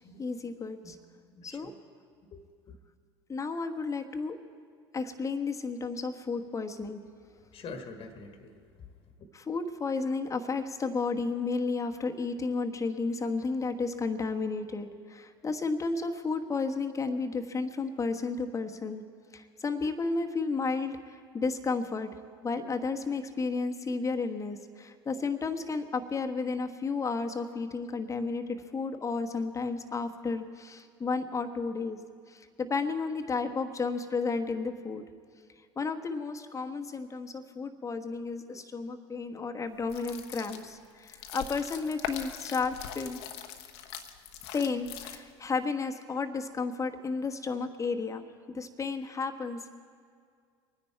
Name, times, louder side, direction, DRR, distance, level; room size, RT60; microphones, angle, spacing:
voice 1, 0.2-1.0 1.4-1.7 3.3-4.4 4.9-7.0 9.3-19.0 19.3-22.1 22.4-32.0 32.3-35.0 35.7-43.2 44.5-49.7, left 4 dB, 25° left, 5 dB, 1.3 m, -32 dB
voice 2, 1.2-1.7 2.3-2.8 7.4-8.9, left 4 dB, 40° left, 6 dB, 1.5 m, -46 dB
sound 1, 39.8-45.5, left 9 dB, 70° left, 1.0 m, -42 dB
23.5 x 9.9 x 4.6 m, 2.1 s
hypercardioid pair, 75°, 14 cm